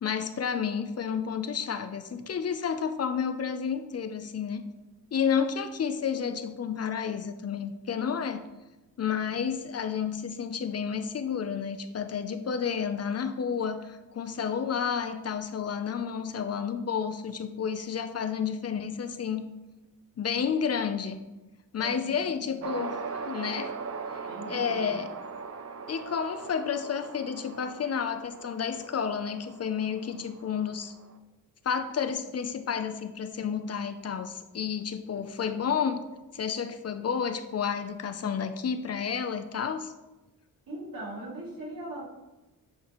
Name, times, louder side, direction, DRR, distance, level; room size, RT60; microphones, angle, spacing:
voice 1, 0.0-4.6 5.1-8.4 9.0-19.4 20.2-21.2 21.7-23.7 24.1-25.1 25.9-30.9 31.6-36.1 36.3-39.9, left 7 dB, 45° left, 9 dB, 0.5 m, -31 dB
voice 2, 21.8-22.6 24.2-25.0 40.7-42.0, right 1 dB, 75° right, -5 dB, 2.4 m, -40 dB
sound 1, 22.6-31.1, right 5 dB, 45° right, 0.5 m, -40 dB
8.6 x 5.1 x 3.0 m, 1.1 s
wide cardioid pair, 120°, 35 cm